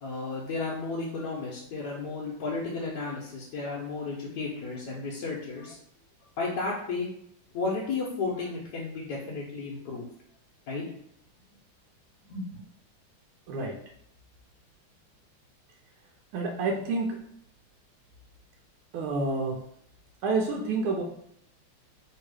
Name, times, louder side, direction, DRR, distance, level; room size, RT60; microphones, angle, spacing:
voice 1, 0.0-5.8 6.4-7.1 7.5-10.1 10.7-10.8 12.3-12.5, left 3 dB, 65° left, -5 dB, 1.2 m, -33 dB
voice 2, 16.3-17.2 18.9-19.6 20.2-21.0, right 3 dB, 85° right, 0 dB, 1.5 m, -28 dB
3.4 x 2.8 x 4.6 m, 0.70 s
omnidirectional pair, 2.3 m